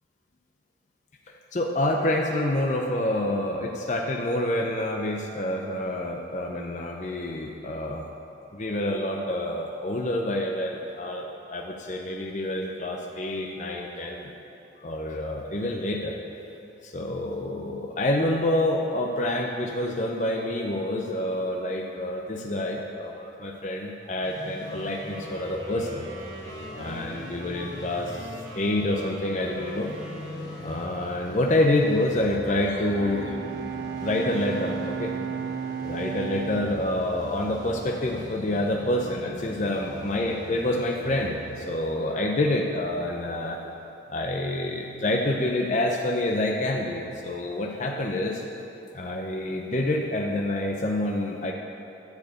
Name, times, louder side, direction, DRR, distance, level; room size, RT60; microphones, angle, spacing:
voice 1, 1.3-8.0 8.5-14.3 14.8-16.2 16.8-26.0 26.7-28.3 28.6-29.9 30.6-33.4 34.0-35.1 35.8-43.6 44.1-48.4 48.9-51.5, left 1 dB, 40° left, 0 dB, 0.6 m, -27 dB
sound 1, 24.2-41.6, left 1 dB, 20° left, 1.1 m, -43 dB
sound 2, 24.6-31.4, equal, 70° right, 2.0 m, -41 dB
Bowed string instrument, 32.7-38.3, right 7 dB, 55° right, 0.4 m, -35 dB
10.5 x 4.7 x 8.0 m, 2.8 s
head